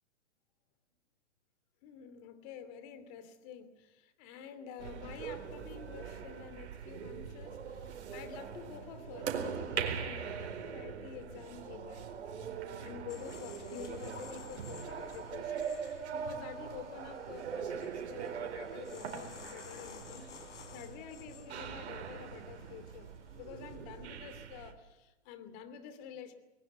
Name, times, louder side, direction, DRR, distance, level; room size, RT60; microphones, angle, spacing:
voice 1, 1.8-12.0 12.7-26.3, left 8 dB, 35° left, 2.8 m, -49 dB
sound 1, 4.8-24.7, right 7 dB, 65° right, 4.3 m, -42 dB
sound 2, 13.1-23.1 23.4-23.7, left 4 dB, 80° left, 4.5 m, -53 dB
21.5 x 19.5 x 9.3 m
hypercardioid pair, 145°, 36 cm